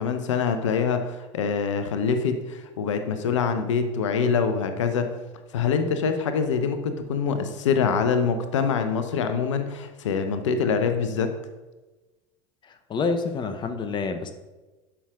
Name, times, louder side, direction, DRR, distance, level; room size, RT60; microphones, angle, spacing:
voice 1, 0.0-5.1 5.5-11.3, left 6 dB, 75° left, 8 dB, 0.6 m, -25 dB
voice 2, 12.6-14.3, left 4 dB, 30° left, 8 dB, 0.7 m, -28 dB
11.0 x 5.6 x 2.4 m, 1.2 s
figure-of-eight pair, 75°, 16 cm